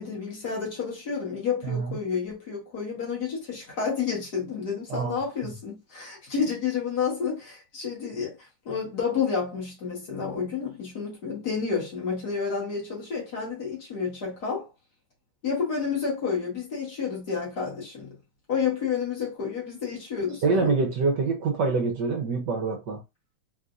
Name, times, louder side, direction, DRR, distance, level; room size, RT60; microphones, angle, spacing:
voice 1, 0.0-14.7 15.4-18.1 18.5-20.7, left 6 dB, 55° left, 1.9 m, -30 dB
voice 2, 20.4-23.0, right 4 dB, 65° right, 1.3 m, -25 dB
4.0 x 2.5 x 2.5 m
omnidirectional pair, 2.2 m